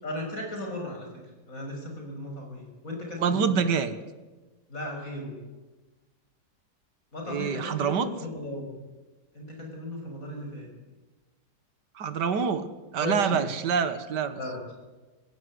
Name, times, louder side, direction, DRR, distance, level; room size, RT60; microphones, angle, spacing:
voice 1, 0.0-1.1 1.5-3.6 4.7-5.4 7.1-8.8 9.3-10.7 13.0-13.4 14.3-14.7, left 1 dB, 50° left, 2 dB, 6.9 m, -36 dB
voice 2, 3.2-4.0 7.3-8.1 12.0-12.7 12.9-14.4, right 6 dB, 70° right, 11 dB, 2.0 m, -26 dB
20.5 x 16.5 x 9.7 m, 1.2 s
omnidirectional pair, 1.9 m